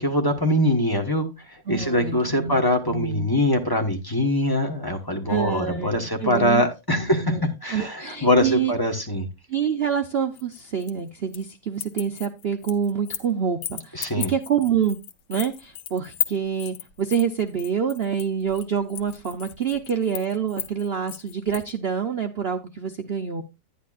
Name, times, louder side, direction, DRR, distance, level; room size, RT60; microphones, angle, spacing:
voice 1, 0.0-9.3 13.9-14.3, left 1 dB, 15° left, 3 dB, 0.9 m, -23 dB
voice 2, 1.7-2.6 2.9-3.3 5.3-6.6 6.9-7.4 7.7-8.7 9.5-15.0 15.3-23.4, right 7 dB, 70° right, 7 dB, 0.5 m, -27 dB
sound 1, 10.4-11.5 11.8-13.3 13.6-21.7, left 11 dB, 90° left, 1.6 m, -35 dB
10.5 x 10.0 x 2.4 m, 0.23 s
omnidirectional pair, 2.0 m